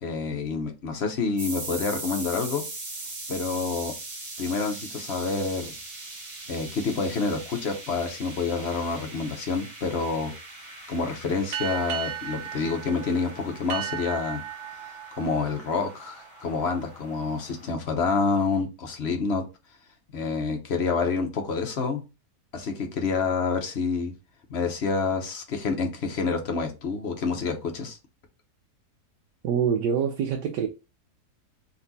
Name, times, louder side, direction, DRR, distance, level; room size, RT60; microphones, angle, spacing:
voice 1, 0.0-2.6 3.3-3.9 4.4-5.8 6.5-10.3 10.9-14.4 15.2-19.4 20.1-22.0 22.5-24.1 24.5-28.0, left 4 dB, 50° left, 0.9 m, -28 dB
sound 1, 1.4-17.7, right 2 dB, 45° right, 1.9 m, -41 dB
sound 2, 11.5-16.6, right 11 dB, 60° right, 0.8 m, -36 dB
voice 2, 29.4-30.7, right 7 dB, 80° right, 1.3 m, -25 dB
4.1 x 2.7 x 4.0 m
omnidirectional pair, 1.8 m